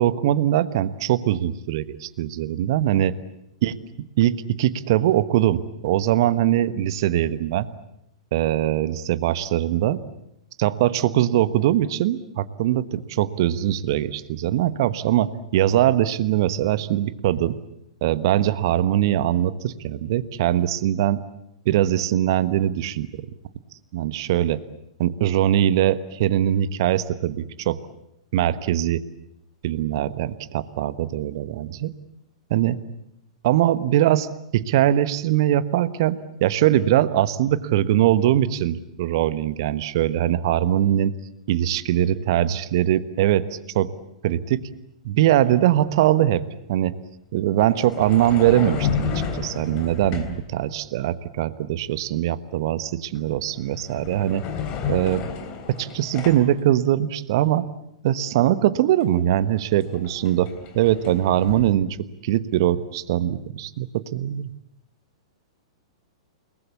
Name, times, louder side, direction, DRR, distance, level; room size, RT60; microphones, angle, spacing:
voice 1, 0.0-3.2 3.6-3.8 4.2-7.7 8.3-10.0 10.6-17.6 18.0-21.2 21.6-23.1 23.9-24.6 25.0-27.8 28.3-29.0 29.6-31.9 32.5-32.8 33.4-41.1 41.5-43.9 44.2-44.7 45.0-47.0 47.3-54.4 54.9-55.3 55.7-57.7 58.0-62.0 62.2-64.5, right 12 dB, 50° right, 14 dB, 1.2 m, -22 dB
sound 1, 45.3-45.5 47.6-50.5 53.1-53.4 53.7-56.6 59.0-59.1 59.4-61.7, left 6 dB, 35° left, 3.5 m, -31 dB
29.5 x 20.0 x 8.3 m, 0.80 s
figure-of-eight pair, 105°, 3 cm